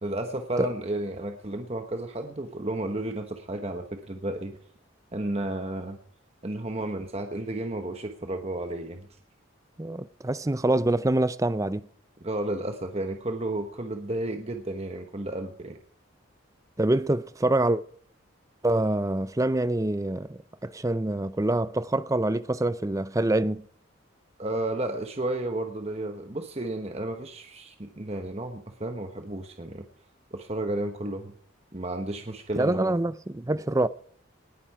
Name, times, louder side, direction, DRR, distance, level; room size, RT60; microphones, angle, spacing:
voice 1, 0.0-4.6 5.1-6.0 6.4-9.1 12.2-15.8 24.4-29.9 30.3-31.3 31.7-33.0, right 1 dB, 30° right, 1.1 m, -32 dB
voice 2, 9.8-11.8 16.8-17.8 18.6-23.6 32.6-33.9, right 2 dB, 15° right, 0.5 m, -25 dB
19.5 x 10.0 x 4.8 m
head